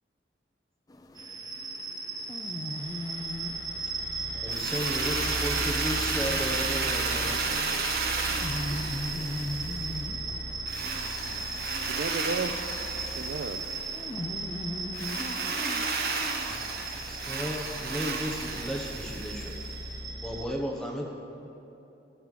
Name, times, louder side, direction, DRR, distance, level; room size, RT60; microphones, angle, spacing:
sound 1, 0.9-18.4, left 1 dB, 20° left, 0.4 m, -41 dB
sound 2, 1.2-20.5, right 2 dB, 25° right, 1.0 m, -36 dB
voice 1, 4.2-7.3 17.1-19.5 20.2-21.1, equal, 5° left, -2 dB, 1.0 m, -34 dB
Drill, 4.5-10.0 10.7-14.0 14.9-19.7, right 4 dB, 55° right, 0.8 m, -33 dB
voice 2, 7.2-10.3 10.8-11.0, equal, 45° left, -5 dB, 2.2 m, -50 dB
voice 3, 11.4-12.5 12.9-13.8, right 4 dB, 85° right, 6 dB, 0.4 m, -35 dB
14.0 x 12.0 x 3.3 m, 2.9 s
head